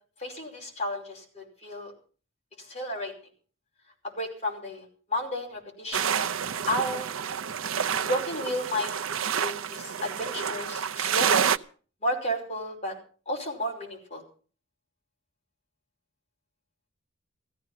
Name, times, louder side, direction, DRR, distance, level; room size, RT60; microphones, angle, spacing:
voice 1, 0.2-1.9 2.6-3.1 4.0-7.1 8.0-8.9 9.3-11.5 12.0-13.0 13.3-14.2, equal, 30° left, 0 dB, 5.3 m, -32 dB
sound 1, 5.9-11.6, right 8 dB, 80° right, 0.6 m, -28 dB
15.5 x 14.0 x 5.6 m, 0.40 s
head